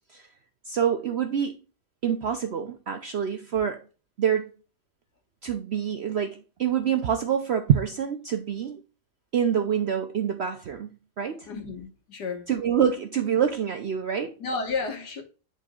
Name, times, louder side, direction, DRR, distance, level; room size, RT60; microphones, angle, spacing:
voice 1, 0.7-1.6 2.0-3.8 4.2-4.5 5.4-8.8 9.3-10.9 11.2-11.5 12.5-14.3, right 8 dB, 65° right, 0.6 m, -26 dB
voice 2, 11.5-12.5 14.4-15.2, left 4 dB, 85° left, 2.0 m, -32 dB
10.0 x 4.4 x 2.3 m
omnidirectional pair, 1.7 m